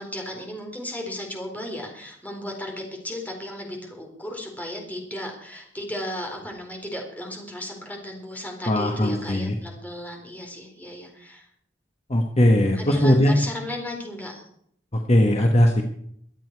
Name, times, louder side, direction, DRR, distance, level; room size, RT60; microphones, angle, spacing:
voice 1, 0.0-11.5 12.8-14.5, left 1 dB, 10° left, 1 dB, 4.1 m, -35 dB
voice 2, 8.7-9.5 12.1-13.3 14.9-15.8, left 1 dB, 35° left, 3 dB, 1.4 m, -19 dB
24.0 x 8.9 x 4.7 m, 0.67 s
head